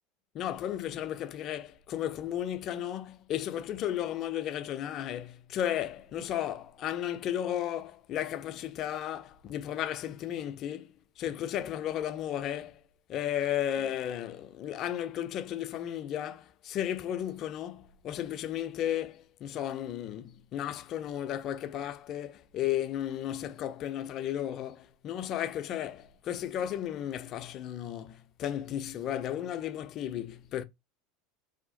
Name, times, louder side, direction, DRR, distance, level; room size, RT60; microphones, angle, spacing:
voice 1, 0.3-12.8 13.1-30.6, left 11 dB, 45° left, 0.4 m, -34 dB
2.8 x 2.0 x 2.6 m
hypercardioid pair, 80°, 0 cm